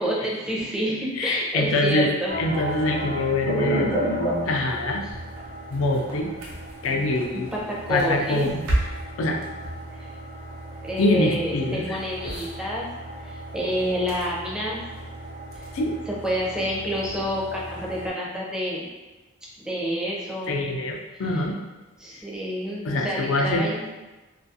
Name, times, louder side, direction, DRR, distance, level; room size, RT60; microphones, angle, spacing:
voice 1, 0.0-2.4 5.0-5.1 7.3-8.5 9.9-10.1 10.8-12.9 13.2-14.8 15.5-15.7 16.1-18.9 19.6-20.6 21.1-21.3 22.0-23.8, equal, 5° right, -5 dB, 0.4 m, -28 dB
voice 2, 1.2-3.9 4.4-5.0 5.7-6.3 6.8-7.5 7.9-8.6 9.2-9.4 11.0-12.0 15.7-15.9 20.5-21.5 22.8-23.9, left 2 dB, 80° left, 2 dB, 0.4 m, -24 dB
sound 1, 2.3-18.1, right 1 dB, 80° right, 0.7 m, -32 dB
2.4 x 2.3 x 2.6 m, 1.2 s
head